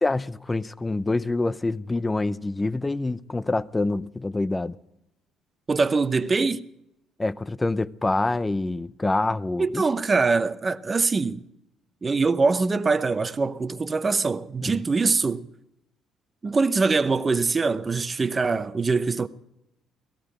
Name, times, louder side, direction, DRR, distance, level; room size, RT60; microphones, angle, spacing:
voice 1, 0.0-4.8 7.2-9.8 14.6-14.8, left 2 dB, 15° left, 0.6 m, -26 dB
voice 2, 5.7-6.6 9.6-11.4 12.0-15.5 16.4-19.3, right 4 dB, 30° right, 0.8 m, -23 dB
18.0 x 14.5 x 5.0 m
cardioid pair, 90°, 0 cm